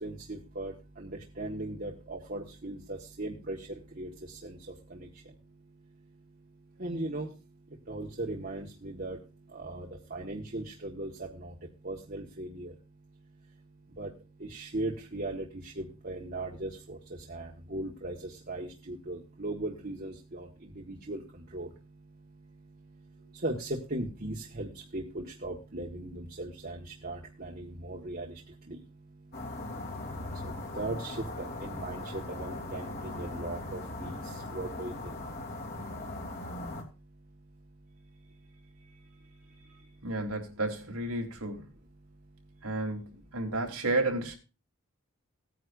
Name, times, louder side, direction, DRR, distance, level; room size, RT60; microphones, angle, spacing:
voice 1, 0.0-3.6 4.0-4.6 4.9-5.1 6.8-7.3 7.9-9.2 9.5-11.5 11.8-12.7 14.0-14.1 14.4-17.0 17.3-21.2 21.5-21.7 23.4-28.3 28.7-28.8 30.4-35.1, right 2 dB, 45° right, 1.5 m, -38 dB
sound 1, 29.3-36.8, left 2 dB, 45° left, 3.0 m, -39 dB
voice 2, 40.0-41.7 42.6-44.4, right 2 dB, 90° right, 3.3 m, -32 dB
18.0 x 9.5 x 2.5 m
head